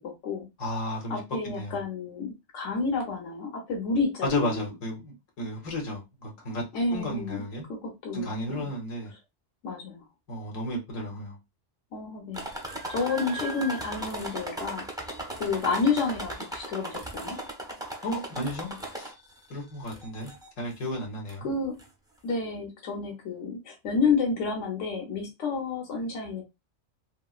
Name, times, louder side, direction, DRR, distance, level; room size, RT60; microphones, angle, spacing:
voice 1, 0.0-0.4 1.1-4.7 6.7-7.4 7.7-8.7 9.6-10.0 11.9-12.5 12.9-14.8 15.4-17.4 21.4-21.7 22.2-26.4, left 4 dB, 70° left, 1.3 m, -30 dB
voice 2, 0.6-1.8 4.2-6.6 6.9-7.6 8.1-9.1 10.3-11.4 18.0-19.1 19.5-20.3 20.6-21.5, left 1 dB, 90° left, 1.4 m, -33 dB
sound 1, 12.3-19.4 19.9-20.5 21.3-21.4 21.8-21.9, right 1 dB, 5° right, 0.4 m, -37 dB
2.9 x 2.7 x 2.4 m
omnidirectional pair, 1.3 m